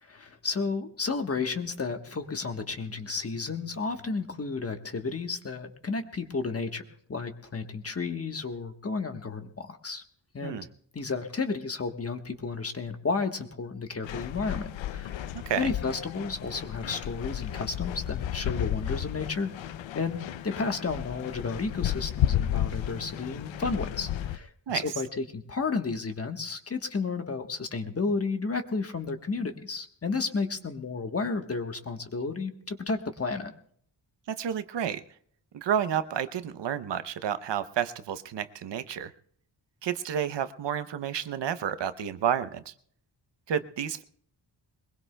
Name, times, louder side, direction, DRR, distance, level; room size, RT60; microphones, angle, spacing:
voice 1, 0.0-6.8 7.1-10.0 10.3-10.6 10.9-33.5, left 4 dB, 30° left, 6 dB, 1.2 m, -32 dB
sound 1, 14.0-24.4, left 11 dB, 90° left, 0.6 m, -33 dB
voice 2, 34.3-35.0 35.5-39.1 39.8-42.7 43.5-44.0, right 9 dB, 70° right, 12 dB, 0.8 m, -30 dB
22.5 x 21.0 x 2.2 m, 0.62 s
wide cardioid pair, 150°, 44 cm